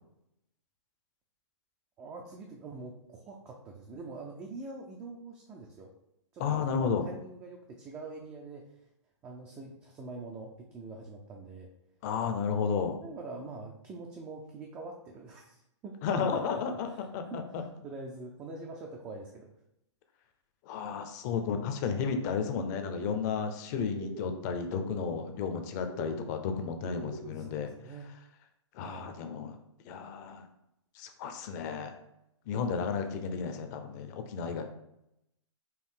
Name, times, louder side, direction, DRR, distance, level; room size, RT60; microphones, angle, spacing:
voice 1, 2.0-5.9 6.3-8.8 9.2-11.7 13.0-19.5 27.3-28.1 28.8-29.2, right 3 dB, 15° right, 0 dB, 0.4 m, -45 dB
voice 2, 6.4-7.0 12.0-13.0 16.0-17.6 20.7-27.7 28.7-29.6 29.8-30.4 31.0-31.9 32.5-34.6, left 6 dB, 35° left, 6 dB, 0.6 m, -33 dB
sound 1, 22.7-23.2 23.9-24.4 24.7-25.2 25.8-26.3 26.8-27.3, right 5 dB, 55° right, 0.8 m, -44 dB
4.6 x 2.7 x 3.7 m, 0.81 s
hypercardioid pair, 140°, 16 cm